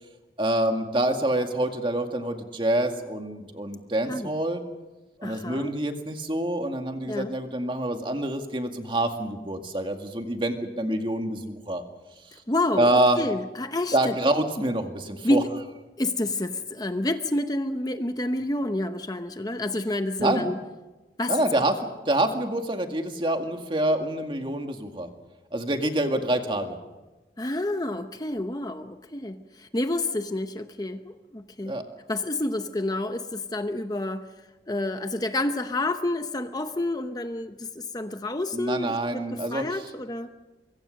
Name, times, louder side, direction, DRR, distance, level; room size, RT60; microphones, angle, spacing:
voice 1, 0.4-4.6 5.2-11.8 12.8-13.2 13.9-15.4 20.2-20.4 21.3-25.1 25.5-26.8 31.6-31.8 38.5-39.8, right 1 dB, 30° right, 5 dB, 2.1 m, -26 dB
voice 2, 5.2-5.7 7.1-7.3 12.3-14.1 15.2-15.5 16.0-20.6 21.2-21.3 27.4-31.8 32.1-34.3 34.7-40.3, left 1 dB, 20° left, 8 dB, 0.9 m, -29 dB
24.5 x 23.5 x 6.5 m, 1.1 s
head